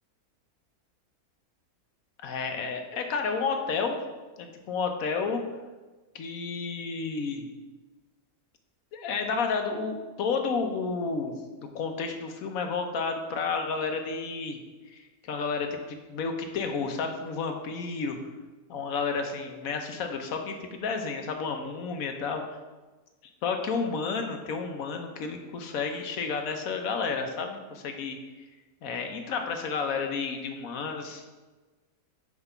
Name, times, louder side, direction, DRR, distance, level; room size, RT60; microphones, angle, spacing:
voice 1, 2.2-4.0 4.4-5.4 6.1-7.5 8.9-11.4 11.6-14.6 14.9-18.2 18.7-22.4 23.4-28.2 28.8-31.2, left 5 dB, 70° left, 5 dB, 1.2 m, -31 dB
6.0 x 4.9 x 5.4 m, 1.2 s
omnidirectional pair, 1.6 m